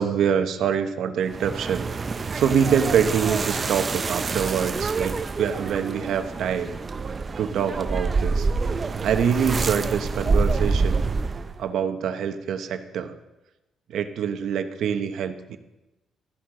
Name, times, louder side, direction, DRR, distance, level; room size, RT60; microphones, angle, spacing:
voice 1, 0.0-1.9 2.3-6.8 7.4-8.5 9.0-11.0 11.6-13.2 13.9-15.6, right 7 dB, 70° right, 8 dB, 0.9 m, -25 dB
sound 1, 1.2-11.6, right 4 dB, 35° right, 0.6 m, -27 dB
13.5 x 11.0 x 3.8 m, 0.98 s
cardioid pair, 90°, 0 cm